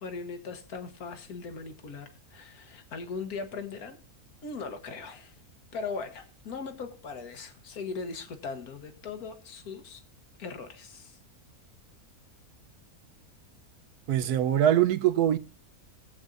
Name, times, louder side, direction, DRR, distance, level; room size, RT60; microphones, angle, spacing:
voice 1, 0.0-4.0 4.4-5.4 5.7-10.0 10.4-11.2, left 4 dB, 80° left, 1.6 m, -39 dB
voice 2, 14.1-15.4, right 11 dB, 85° right, 1.2 m, -23 dB
20.0 x 7.9 x 2.5 m
omnidirectional pair, 1.6 m